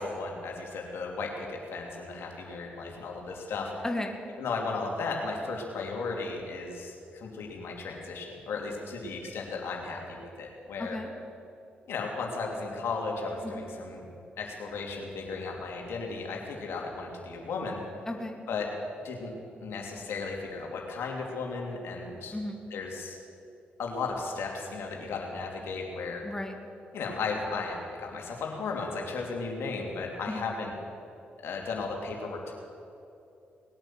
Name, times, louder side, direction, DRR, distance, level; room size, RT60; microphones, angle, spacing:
voice 1, 0.0-3.7 4.4-11.0 11.9-14.0 14.4-17.8 18.5-18.7 19.0-19.3 19.6-22.4 22.7-23.2 23.8-26.2 26.9-30.7 31.4-32.5, left 4 dB, 75° left, 0 dB, 2.8 m, -35 dB
voice 2, 3.8-4.2 10.8-11.1 13.4-13.7 18.1-18.4 22.3-22.7 26.2-26.6 30.3-30.5, left 1 dB, 15° left, 3 dB, 1.8 m, -35 dB
20.0 x 9.0 x 7.5 m, 2.8 s
supercardioid pair, 50°, 4 cm